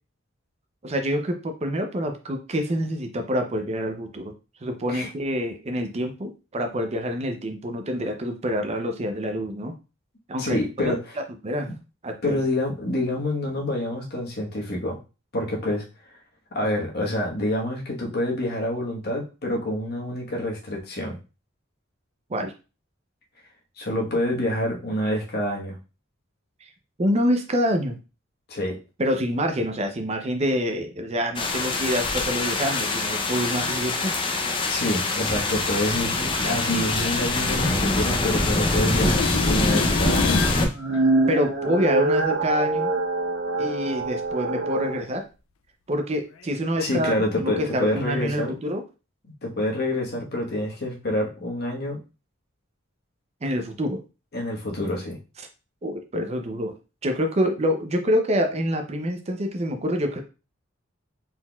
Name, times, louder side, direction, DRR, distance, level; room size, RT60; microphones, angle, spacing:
voice 1, 0.8-4.3 4.6-9.7 10.3-10.6 10.8-10.9 11.4-11.7 12.0-12.4 22.3-22.5 27.0-28.0 29.0-34.2 41.3-42.9 43.6-45.2 45.9-48.8 53.4-54.0 55.8-56.7 57.0-60.2, equal, 30° right, 5 dB, 0.6 m, -26 dB
voice 2, 10.4-11.0 12.2-15.0 15.3-15.8 16.5-21.2 23.8-25.8 28.5-28.8 34.7-40.4 46.8-48.5 49.4-52.0 54.3-55.2, left 1 dB, 50° left, 0 dB, 1.2 m, -27 dB
sound 1, 31.4-40.7, left 2 dB, 25° left, 0.5 m, -24 dB
sound 2, 36.4-38.5 38.8-40.7 46.4-46.5, left 7 dB, 85° left, 0.4 m, -31 dB
sound 3, 40.6-45.0, right 2 dB, 70° right, 1.5 m, -25 dB
4.3 x 3.9 x 2.3 m, 0.31 s
head